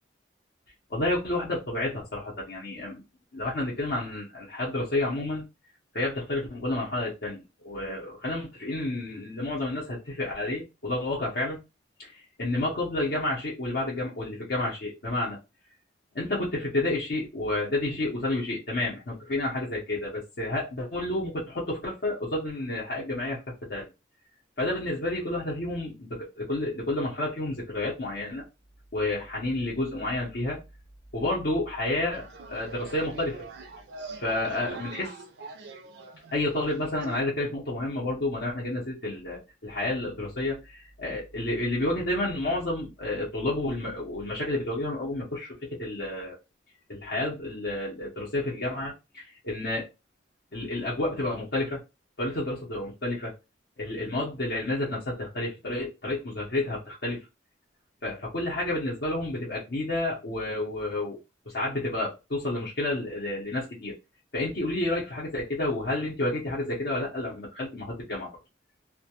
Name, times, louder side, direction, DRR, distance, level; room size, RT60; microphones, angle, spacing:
voice 1, 0.9-3.0 3.3-5.4 5.9-11.6 12.0-15.4 16.1-23.4 23.7-23.9 24.6-28.4 28.9-30.6 31.1-33.4 34.1-35.2 36.3-46.4 46.9-49.9 50.5-51.8 52.2-53.3 53.8-57.2 58.0-61.2 61.5-64.0 64.3-68.3, left 2 dB, 55° left, 0.7 m, -30 dB
sound 1, 32.1-37.2, right 3 dB, 60° right, 0.4 m, -43 dB
2.2 x 2.1 x 2.8 m
head